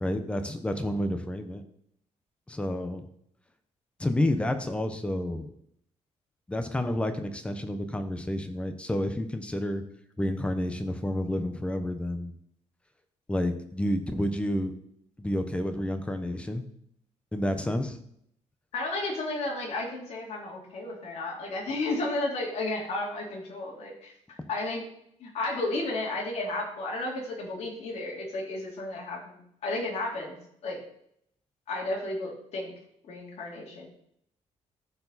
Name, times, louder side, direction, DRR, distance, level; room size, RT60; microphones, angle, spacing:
voice 1, 0.0-1.6 2.5-3.1 4.0-5.5 6.5-9.8 10.2-12.4 13.3-14.7 15.2-16.6 17.3-18.0, left 1 dB, 10° left, 8 dB, 0.9 m, -30 dB
voice 2, 18.7-24.8 25.2-30.4 30.6-30.8 31.7-32.7 33.1-33.9, left 2 dB, 65° left, -2 dB, 3.1 m, -33 dB
14.5 x 4.8 x 4.1 m, 0.71 s
cardioid pair, 150°, 12 cm